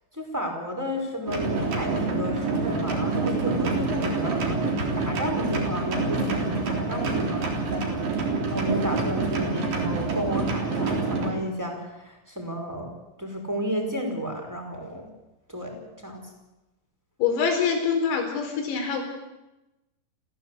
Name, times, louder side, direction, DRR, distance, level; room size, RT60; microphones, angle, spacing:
voice 1, 0.1-8.1 8.5-12.9 13.2-15.1 15.5-16.3, equal, 5° right, 1 dB, 4.1 m, -32 dB
sound 1, 1.3-11.3, right 3 dB, 45° right, 4.7 m, -27 dB
voice 2, 17.2-19.0, left 6 dB, 85° left, 3 dB, 7.0 m, -25 dB
28.5 x 15.5 x 8.3 m, 1.0 s
omnidirectional pair, 5.9 m